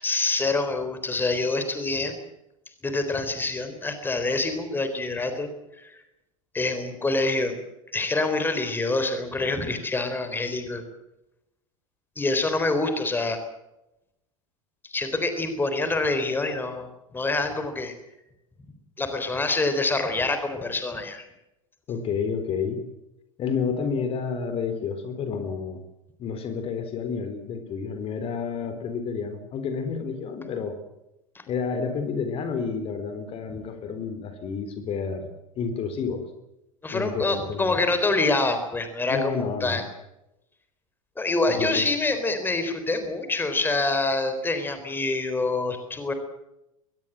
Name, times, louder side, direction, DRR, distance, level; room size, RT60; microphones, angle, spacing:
voice 1, 0.0-2.1 2.8-5.5 5.8-6.0 6.5-7.6 7.9-10.8 12.2-13.4 14.8-17.9 19.0-21.2 36.8-39.8 41.2-46.1, left 2 dB, 10° left, 8 dB, 3.8 m, -26 dB
voice 2, 21.9-22.8 23.4-25.8 26.2-30.7 31.5-35.3 35.6-36.2 36.9-37.8 39.1-39.8 41.5-41.8, left 6 dB, 35° left, 9 dB, 3.8 m, -30 dB
22.5 x 21.0 x 7.6 m, 0.89 s
figure-of-eight pair, 85°, 18 cm